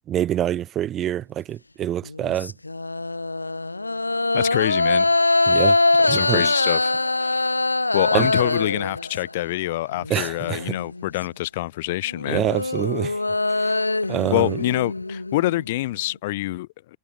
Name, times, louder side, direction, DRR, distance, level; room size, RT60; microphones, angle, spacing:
voice 1, 0.1-2.5 5.5-5.8 6.1-6.4 8.1-8.3 10.1-10.6 12.3-13.2 13.6-13.7 14.1-14.6, right 11 dB, 30° right, 0.3 m, -25 dB
sound 1, 2.0-9.5 9.9-11.1 12.1-16.0, left 2 dB, 85° left, 1.0 m, -23 dB
voice 2, 4.3-5.1 6.0-7.5 7.9-12.5 13.7-13.8 14.3-17.0, left 17 dB, 55° left, 0.6 m, -26 dB
figure-of-eight pair, 90°, 0 cm